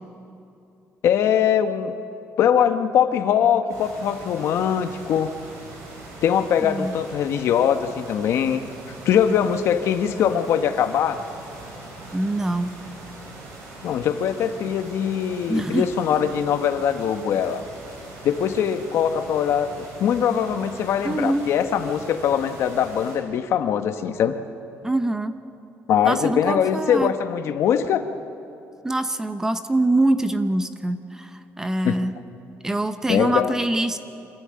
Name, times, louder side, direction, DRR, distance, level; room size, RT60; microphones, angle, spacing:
voice 1, 1.0-1.9 2.4-5.3 6.2-8.6 9.0-11.2 13.8-17.6 18.2-24.4 25.9-28.0 31.8-32.0 33.1-33.5, left 8 dB, 65° left, 8 dB, 1.2 m, -22 dB
sound 1, 3.7-23.2, right 2 dB, 80° right, 6.7 m, -41 dB
voice 2, 6.6-6.9 12.1-12.8 15.5-15.9 21.0-21.5 24.8-25.3 26.0-27.1 28.8-32.1 32.6-34.0, right 2 dB, 10° right, 10 dB, 0.8 m, -24 dB
25.0 x 14.0 x 8.8 m, 2.6 s
cardioid pair, 150°, 5 cm